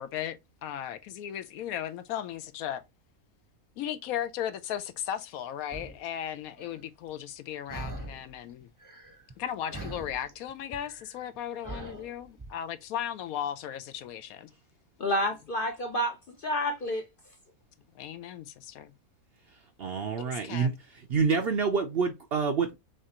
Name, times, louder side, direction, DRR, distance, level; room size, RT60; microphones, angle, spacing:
voice 1, 0.0-2.8 3.8-8.7 9.4-14.5 17.9-18.9 20.2-20.8, left 10 dB, 75° left, 1.0 m, -36 dB
sound 1, 5.7-6.0 6.6-6.8 7.7-8.3 8.6-9.4 9.7-12.5, right 2 dB, 15° right, 0.7 m, -42 dB
voice 2, 15.0-17.1, equal, 50° left, 0.6 m, -29 dB
voice 3, 19.8-20.7 21.1-22.8, right 5 dB, 55° right, 0.7 m, -27 dB
6.4 x 2.5 x 2.9 m
omnidirectional pair, 1.6 m